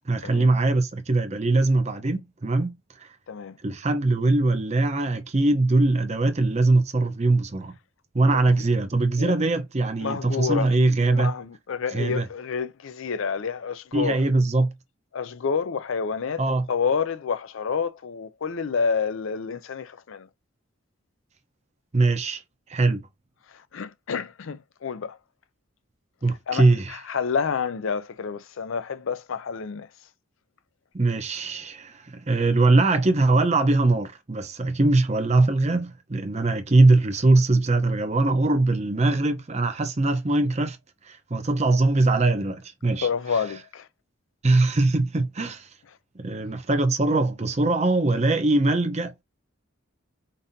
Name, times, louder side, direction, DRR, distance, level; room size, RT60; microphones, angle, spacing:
voice 1, 0.1-2.7 3.0-3.1 3.6-7.7 8.1-11.3 11.9-12.2 13.9-14.7 16.4-16.6 21.9-22.4 22.7-23.1 26.2-27.0 30.9-40.8 41.0-43.1 44.4-45.7 46.1-49.1, right 2 dB, 30° right, 0.7 m, -22 dB
voice 2, 3.3-3.6 8.2-8.5 9.2-9.4 10.0-10.7 11.1-14.2 15.1-16.4 16.7-20.3 23.5-25.2 26.5-29.9 42.9-43.9, left 6 dB, 70° left, 0.5 m, -29 dB
5.3 x 2.6 x 2.7 m
head